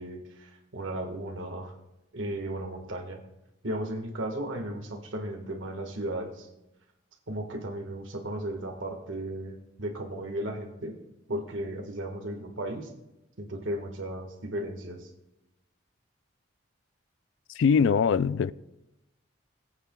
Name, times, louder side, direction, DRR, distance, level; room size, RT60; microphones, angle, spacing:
voice 1, 0.0-1.7 2.1-3.2 3.6-6.5 7.3-10.9 11.3-12.9 13.4-15.1, right 1 dB, 80° right, 1.6 m, -35 dB
voice 2, 17.6-18.5, left 6 dB, 75° left, 0.3 m, -22 dB
21.0 x 8.9 x 2.3 m
head